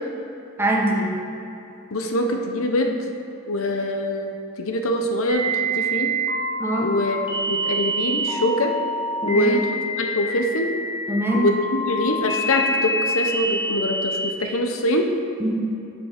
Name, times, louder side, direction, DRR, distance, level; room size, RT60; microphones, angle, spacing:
voice 1, 0.6-1.2 6.6-6.9 9.2-9.6 11.1-11.5 15.4-15.5, right 1 dB, 10° right, -2 dB, 1.0 m, -22 dB
voice 2, 1.9-3.0 3.5-6.1 6.8-7.2 7.4-8.7 9.2-9.6 10.0-10.7 11.3-15.1, left 1 dB, 70° left, 3 dB, 0.8 m, -23 dB
sound 1, 5.3-14.3, right 1 dB, 25° left, 1.5 m, -26 dB
8.1 x 7.0 x 5.8 m, 2.8 s
head